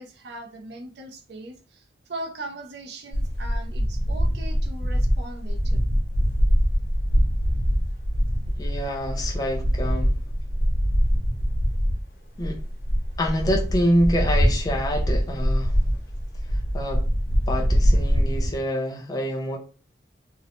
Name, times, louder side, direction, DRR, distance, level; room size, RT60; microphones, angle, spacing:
voice 1, 0.0-5.8, right 1 dB, 65° right, 0.5 m, -39 dB
sound 1, 3.1-12.0 12.4-18.6, equal, 50° left, 0.7 m, -23 dB
voice 2, 8.6-10.1 12.4-12.6 13.2-15.7 16.7-17.0 17.5-19.6, equal, 20° left, 0.4 m, -26 dB
2.7 x 2.0 x 2.8 m
head